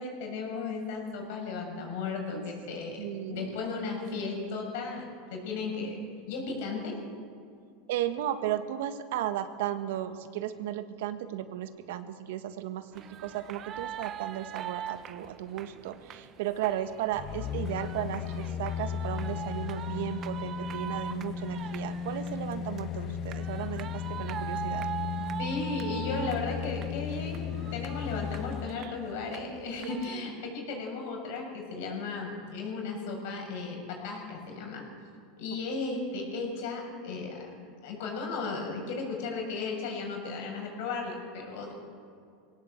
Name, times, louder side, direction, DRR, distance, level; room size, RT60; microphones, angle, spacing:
voice 1, 0.0-6.0 6.3-7.0 25.4-34.8 35.4-37.5 37.8-41.7, left 4 dB, 70° left, 2 dB, 7.1 m, -35 dB
voice 2, 3.0-3.6 7.9-24.9 28.8-29.0, right 11 dB, 75° right, 9 dB, 1.6 m, -35 dB
sound 1, 12.9-30.2, right 10 dB, 35° right, 0.9 m, -42 dB
sound 2, 17.1-28.7 29.1-29.2, left 8 dB, 35° left, 1.0 m, -35 dB
22.5 x 17.5 x 8.2 m, 2.3 s
supercardioid pair, 135°, 0 cm